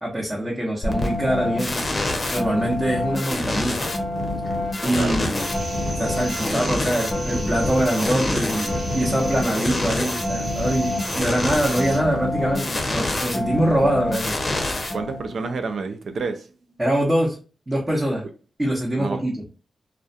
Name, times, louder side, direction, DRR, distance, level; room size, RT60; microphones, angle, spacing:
voice 1, 0.0-1.8 2.3-3.9 4.4-4.5 4.8-5.5 6.0-14.4 16.8-17.4 17.7-18.3 18.6-19.4, right 1 dB, 20° right, 0.9 m, -24 dB
sound 1, 0.8-15.5, left 1 dB, 40° left, 0.6 m, -26 dB
sound 2, 5.4-12.0, right 1 dB, 55° right, 1.1 m, -35 dB
voice 2, 14.9-16.5 19.0-19.2, right 4 dB, 70° right, 0.4 m, -28 dB
2.3 x 2.2 x 2.6 m
cardioid pair, 60°, 0 cm